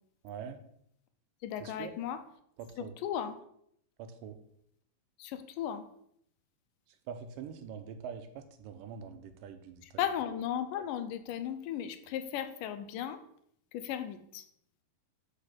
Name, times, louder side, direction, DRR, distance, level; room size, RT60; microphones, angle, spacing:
voice 1, 0.2-0.6 1.6-1.9 2.6-2.9 4.0-4.4 7.1-10.0, right 7 dB, 85° right, 8 dB, 2.5 m, -44 dB
voice 2, 1.4-2.2 2.8-3.3 5.2-5.9 9.8-13.2 13.7-14.5, left 10 dB, 80° left, 9 dB, 2.2 m, -36 dB
6.5 x 5.8 x 5.8 m, 0.69 s
omnidirectional pair, 3.8 m